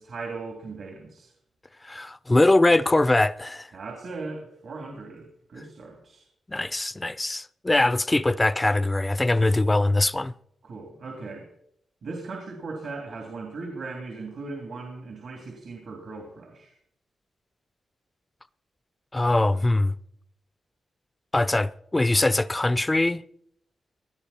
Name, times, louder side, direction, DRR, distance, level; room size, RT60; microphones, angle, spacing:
voice 1, 0.0-1.3 3.7-6.2 10.6-11.5 12.0-16.7, right 3 dB, 70° right, 3.0 m, -38 dB
voice 2, 1.8-3.7 6.5-10.3 19.1-20.0 21.3-23.2, left 2 dB, 20° left, 0.5 m, -22 dB
19.5 x 11.0 x 4.3 m
cardioid pair, 75°, 0 cm